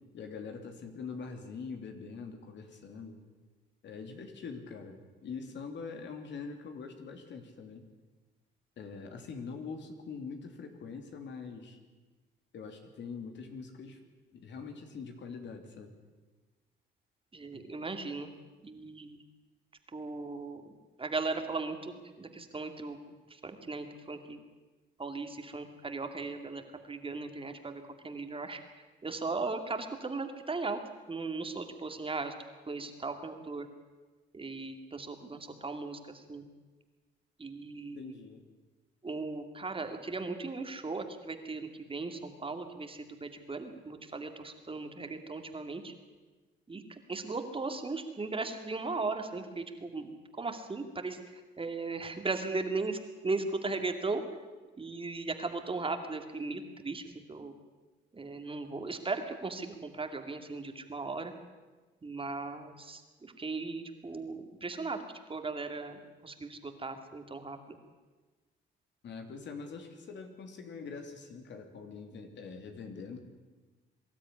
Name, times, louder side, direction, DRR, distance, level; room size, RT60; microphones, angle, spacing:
voice 1, 0.1-3.2 3.8-7.8 8.8-11.8 12.5-14.0 14.3-15.9 17.5-17.6 37.9-38.4 69.0-73.2, left 5 dB, 65° left, 5 dB, 3.2 m, -43 dB
voice 2, 17.3-18.3 18.6-19.2 19.9-23.0 23.3-24.4 25.0-30.8 31.1-32.3 32.7-33.7 34.3-36.4 37.4-38.2 39.0-45.9 46.7-53.0 53.2-54.2 54.8-57.5 58.1-61.3 62.0-65.0 65.3-67.6, right 3 dB, 25° right, 6 dB, 2.5 m, -37 dB
23.0 x 13.0 x 9.9 m, 1.3 s
cardioid pair, 90°, 20 cm